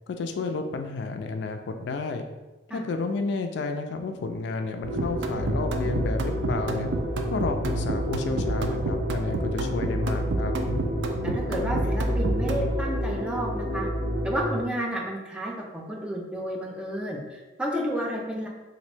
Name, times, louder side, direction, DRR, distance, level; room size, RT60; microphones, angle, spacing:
voice 1, 0.1-2.2 2.7-6.9 7.3-10.6, left 3 dB, 65° left, 6 dB, 0.3 m, -31 dB
sound 1, 4.8-14.6, equal, 90° right, 1.3 m, -29 dB
sound 2, 5.0-12.7, right 2 dB, 70° right, 0.3 m, -30 dB
voice 2, 11.2-13.9 14.2-18.5, equal, 5° right, -2 dB, 0.4 m, -31 dB
3.0 x 2.5 x 3.2 m, 1.1 s
head